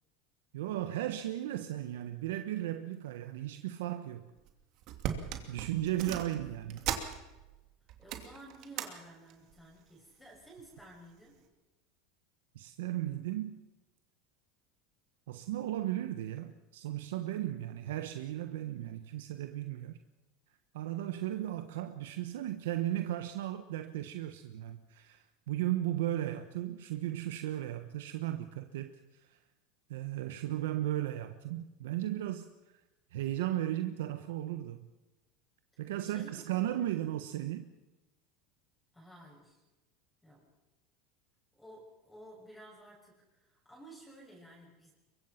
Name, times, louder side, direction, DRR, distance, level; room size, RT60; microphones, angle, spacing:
voice 1, 0.5-4.2 5.5-6.8 12.5-13.6 15.3-19.9 20.7-29.4 29.9-32.5 33.1-34.9 35.8-37.7, right 13 dB, 85° right, 1.2 m, -36 dB
sound 1, 4.4-4.5 4.8-7.6 7.9-8.9 9.3-9.6 10.4-10.9 11.4-11.5, right 10 dB, 55° right, 2.7 m, -39 dB
voice 2, 8.0-11.4 36.0-36.8 38.9-39.6 40.2-40.4 41.5-44.9, right 1 dB, 5° left, 6.7 m, -54 dB
23.5 x 22.5 x 5.9 m
supercardioid pair, 120°, 0 cm